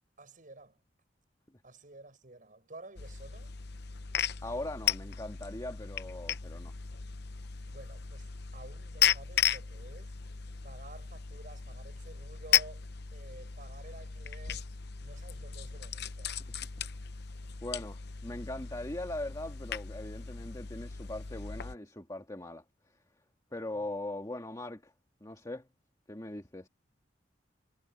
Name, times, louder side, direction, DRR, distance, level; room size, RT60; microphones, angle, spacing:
voice 1, 0.2-0.8 1.6-3.6 7.7-10.2 10.6-14.7 15.0-16.4 23.7-23.9, right 2 dB, 45° right, 6.9 m, -52 dB
sound 1, 3.0-21.8, left 9 dB, 65° left, 0.8 m, -35 dB
voice 2, 4.4-6.7 17.6-23.0 23.5-24.9 25.2-25.7 26.1-26.7, left 1 dB, 20° left, 1.9 m, -40 dB
head